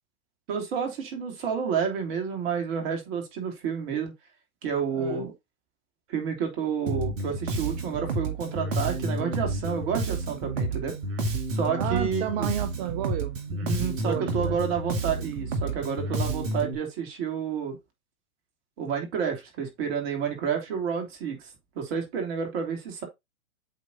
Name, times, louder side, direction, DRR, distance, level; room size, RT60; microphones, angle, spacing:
voice 1, 0.5-4.1 4.6-5.3 6.1-11.0 11.5-12.5 13.6-17.8 18.8-21.5 21.8-23.0, right 7 dB, 45° right, 2.9 m, -30 dB
voice 2, 4.9-5.3 11.8-13.4 14.0-14.6, right 11 dB, 25° right, 0.5 m, -32 dB
Bass guitar, 6.9-16.7, right 2 dB, 60° right, 2.0 m, -30 dB
8.4 x 3.3 x 4.1 m
hypercardioid pair, 110°, 43 cm